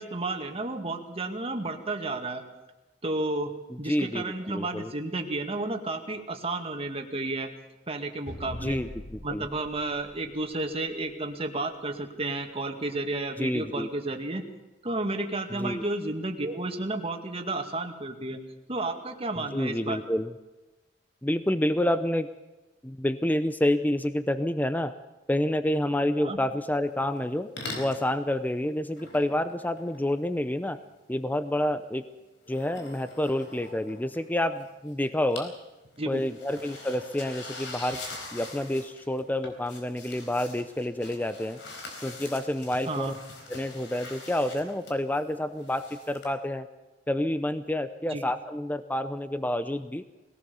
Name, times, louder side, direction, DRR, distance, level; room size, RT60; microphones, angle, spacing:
voice 1, 0.0-2.4 3.0-3.5 3.8-7.5 7.9-8.8 9.2-14.4 14.8-18.4 18.7-20.0 26.2-26.4 36.0-36.2 42.9-43.2 48.1-48.2, right 2 dB, 30° right, 4 dB, 2.2 m, -32 dB
voice 2, 3.7-4.9 8.6-9.5 13.4-13.9 15.5-15.8 19.5-20.3 21.2-22.3 22.8-25.0 25.3-27.5 27.7-30.8 31.1-32.1 32.5-35.5 36.1-38.0 38.3-41.6 42.0-43.1 43.5-46.7 47.1-50.0, left 1 dB, 10° left, 11 dB, 0.6 m, -28 dB
sound 1, 8.3-11.0, equal, 55° left, 8.0 m, -43 dB
sound 2, 27.0-27.3 27.6-28.1 28.9-30.6 32.4-34.6 34.9-35.6 35.8-46.3, left 2 dB, 75° left, 4.4 m, -44 dB
21.0 x 18.0 x 7.0 m, 1.1 s
head